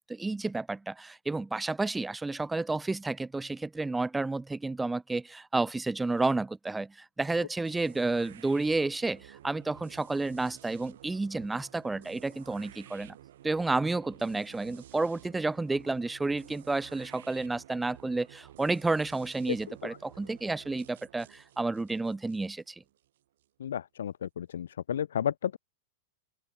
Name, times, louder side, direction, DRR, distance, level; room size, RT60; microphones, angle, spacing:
voice 1, 0.1-13.2 13.4-22.8, right 3 dB, 10° right, 0.4 m, -31 dB
sound 1, 7.6-23.5, right 12 dB, 75° right, 5.8 m, -53 dB
voice 2, 23.6-25.6, left 9 dB, 90° left, 0.8 m, -32 dB
open air
hypercardioid pair, 130°, 0 cm